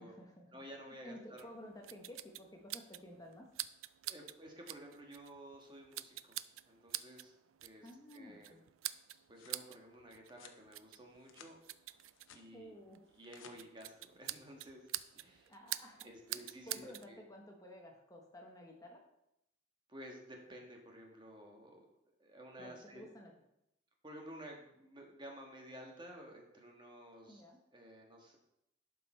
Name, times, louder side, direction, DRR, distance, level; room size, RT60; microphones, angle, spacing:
voice 1, 0.0-0.6 1.0-3.5 7.8-8.6 12.5-13.0 15.5-16.1 16.4-19.0 22.6-23.3 27.3-27.6, left 1 dB, 20° left, 1 dB, 1.0 m, -53 dB
voice 2, 0.5-1.5 4.0-6.4 6.7-7.3 7.6-7.9 8.1-8.5 9.3-11.6 12.3-12.7 13.2-14.9 15.1-15.5 16.0-17.2 19.9-23.1 24.0-27.4 27.7-28.4, equal, 25° right, 1 dB, 1.4 m, -53 dB
sound 1, 1.4-17.1, right 15 dB, 85° right, 0.4 m, -48 dB
sound 2, 8.9-9.6 10.3-10.6 11.1-11.5 11.9-12.5 13.1-13.6, left 7 dB, 80° left, 0.8 m, -59 dB
11.5 x 5.4 x 4.3 m, 0.82 s
head